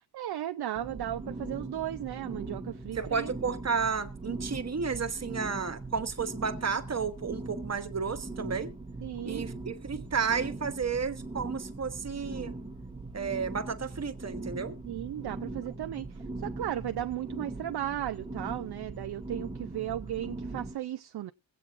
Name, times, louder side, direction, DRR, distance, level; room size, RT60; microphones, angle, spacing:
voice 1, 0.0-3.3 9.0-9.5 14.8-21.3, right 12 dB, 60° right, 0.6 m, -36 dB
sound 1, 0.7-20.7, right 2 dB, 10° right, 1.0 m, -40 dB
voice 2, 2.9-8.7 9.2-12.5 13.1-14.8, right 5 dB, 35° right, 1.1 m, -32 dB
22.5 x 8.4 x 2.5 m
wide cardioid pair, 105°, 43 cm